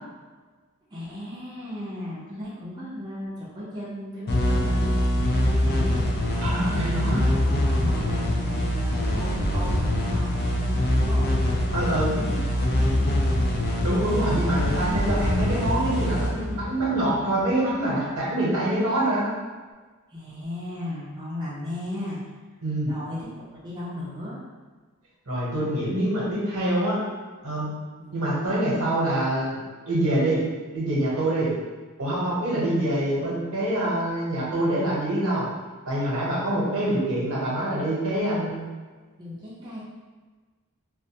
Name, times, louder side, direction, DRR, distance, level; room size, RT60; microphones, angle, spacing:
voice 1, 0.9-11.3 11.9-12.4 12.7-13.1 14.3-15.1 20.1-22.2 22.9-24.4 28.0-28.1 32.8-33.0 39.2-39.8, left 1 dB, 20° right, -8 dB, 0.5 m, -36 dB
sound 1, 4.3-17.6, left 1 dB, 45° left, 0.4 m, -24 dB
voice 2, 6.4-7.2 11.7-12.1 13.8-19.3 22.6-22.9 25.3-27.0 27.4-27.8 28.1-29.6 29.9-30.4 30.7-31.5 32.0-35.5 35.9-38.7, right 1 dB, 80° right, -6 dB, 0.9 m, -25 dB
2.4 x 2.2 x 2.8 m, 1.4 s
head